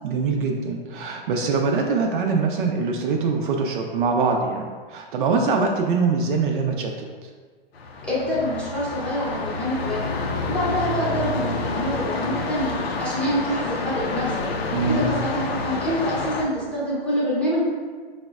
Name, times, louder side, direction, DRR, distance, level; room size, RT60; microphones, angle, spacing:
voice 1, 0.0-7.1 14.7-15.0, right 4 dB, 55° right, 2 dB, 0.4 m, -23 dB
sound 1, 7.7-16.4, left 3 dB, 90° left, 0.5 m, -28 dB
voice 2, 8.0-10.2 10.5-12.7 13.0-14.5 14.9-17.6, equal, 5° left, -9 dB, 0.7 m, -26 dB
4.9 x 2.1 x 2.3 m, 1.5 s
hypercardioid pair, 140°, 30 cm